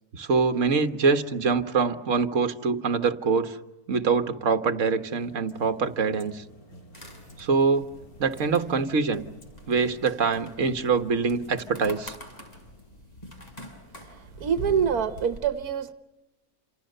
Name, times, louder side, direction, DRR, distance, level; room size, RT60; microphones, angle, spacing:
voice 1, 0.1-3.6 3.9-6.4 7.4-7.9 8.2-9.2 9.7-12.1, right 5 dB, 55° right, 8 dB, 1.7 m, -24 dB
sound 1, 4.8-13.0, right 1 dB, 80° left, 5.0 m, -51 dB
sound 2, 6.9-15.4, equal, 25° left, 6.0 m, -46 dB
voice 2, 14.4-15.9, right 7 dB, 85° right, 11 dB, 1.6 m, -25 dB
28.5 x 28.0 x 6.7 m, 1.0 s
omnidirectional pair, 1.6 m